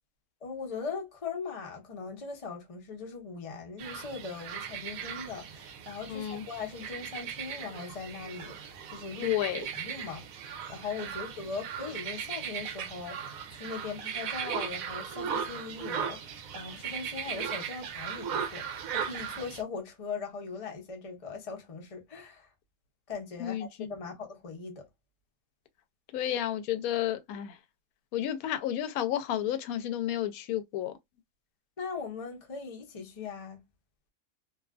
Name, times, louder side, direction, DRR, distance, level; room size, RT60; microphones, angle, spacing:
voice 1, 0.4-22.5 23.1-24.9 31.8-33.6, left 5 dB, 35° left, 0.6 m, -40 dB
sound 1, 3.8-19.6, right 7 dB, 75° right, 1.0 m, -38 dB
voice 2, 6.1-6.4 9.2-9.7 23.4-23.9 26.1-27.6 28.1-30.9, left 11 dB, 80° left, 1.0 m, -31 dB
2.7 x 2.4 x 2.3 m
omnidirectional pair, 1.5 m